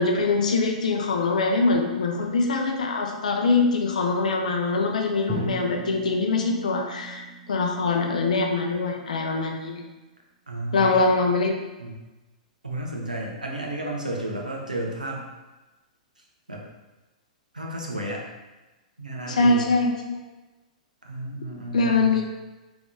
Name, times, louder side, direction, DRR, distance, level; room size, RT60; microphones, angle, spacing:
voice 1, 0.0-9.8 10.7-11.6 19.3-20.2 21.7-22.2, left 3 dB, 70° left, 2 dB, 0.6 m, -23 dB
Drum, 5.3-9.3, right 2 dB, 20° right, 1.3 m, -36 dB
voice 2, 10.5-11.1 11.8-12.0 12.6-15.3 16.2-16.6 17.5-18.2 19.0-19.7 21.0-22.1, right 1 dB, 85° right, -1 dB, 0.8 m, -32 dB
3.6 x 3.0 x 3.4 m, 1.1 s
figure-of-eight pair, 105°, 4 cm